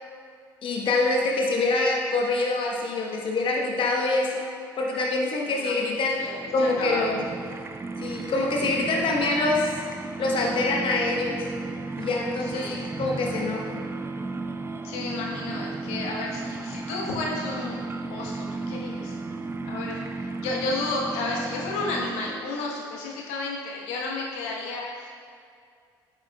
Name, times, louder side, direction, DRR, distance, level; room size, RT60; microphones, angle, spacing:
voice 1, 0.6-4.5 4.8-6.2 6.5-7.2 8.0-9.7 10.2-11.4 12.0-13.8, left 2 dB, 50° left, -1 dB, 1.1 m, -25 dB
sound 1, 6.0-22.7, right 3 dB, 20° right, 0.5 m, -34 dB
voice 2, 6.2-6.5 6.8-7.1 12.4-12.9 14.8-17.8 18.1-19.2 19.6-20.0 20.4-25.1, left 3 dB, 70° left, -1 dB, 1.1 m, -32 dB
8.9 x 8.1 x 2.3 m, 2.4 s
hypercardioid pair, 55°, 11 cm